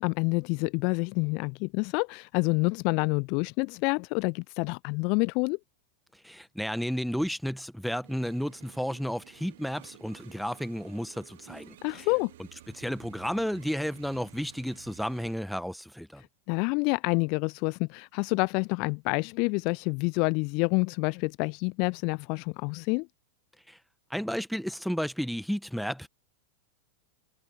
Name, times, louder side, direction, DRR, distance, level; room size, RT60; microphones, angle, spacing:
voice 1, 0.0-5.6 11.8-12.3 16.5-23.1, left 32 dB, 45° left, 0.4 m, -28 dB
voice 2, 6.2-12.1 12.7-16.2 23.7-23.8 24.1-26.1, equal, ahead, 1.6 m, -32 dB
sound 1, 8.0-15.4, right 14 dB, 55° right, 2.5 m, -53 dB
figure-of-eight pair, 90°, 0 cm